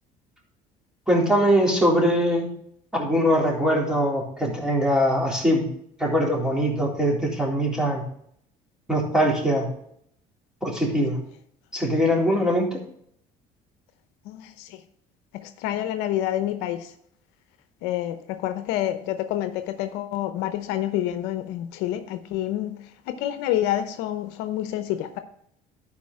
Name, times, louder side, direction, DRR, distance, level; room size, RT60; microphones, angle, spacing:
voice 1, 1.1-2.5 2.9-5.7 6.0-8.0 8.9-9.7 10.6-11.2 11.7-12.8, equal, 5° right, 3.7 m, -22 dB
voice 2, 14.3-14.8 15.3-16.9 17.8-25.2, left 12 dB, 80° left, 0.8 m, -28 dB
11.5 x 4.9 x 4.8 m
supercardioid pair, 90°, 17 cm